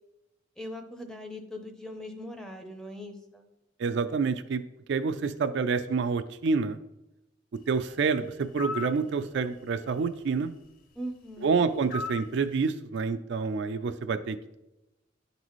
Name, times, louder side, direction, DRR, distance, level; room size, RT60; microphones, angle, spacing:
voice 1, 0.6-3.5 11.0-11.6, equal, 5° left, 5 dB, 0.6 m, -40 dB
voice 2, 3.8-4.6 4.9-6.8 7.7-10.5 11.4-14.6, right 5 dB, 60° right, 10 dB, 0.4 m, -28 dB
sound 1, 8.6-9.0 11.9-12.3, left 3 dB, 45° left, 0.6 m, -34 dB
10.5 x 4.0 x 3.1 m, 0.92 s
head